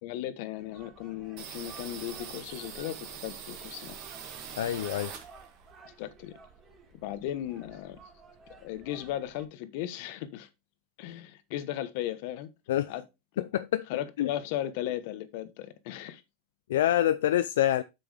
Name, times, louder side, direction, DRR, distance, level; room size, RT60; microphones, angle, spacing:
voice 1, 0.0-4.0 6.0-6.3 7.0-8.0 8.6-10.5 11.0-12.5 12.9-13.0 13.3-13.4 13.9-16.2, left 12 dB, 60° left, 1.0 m, -36 dB
sound 1, 0.6-9.4, right 4 dB, 25° right, 2.1 m, -55 dB
sound 2, 1.4-5.7 6.0-7.4 7.7-7.8 8.1-8.8, right 7 dB, 50° right, 2.0 m, -44 dB
voice 2, 4.6-5.1 12.7-12.9 13.4-13.8 14.2-14.3 16.7-17.8, left 12 dB, 80° left, 0.4 m, -26 dB
8.1 x 6.0 x 3.3 m
supercardioid pair, 120°, 0 cm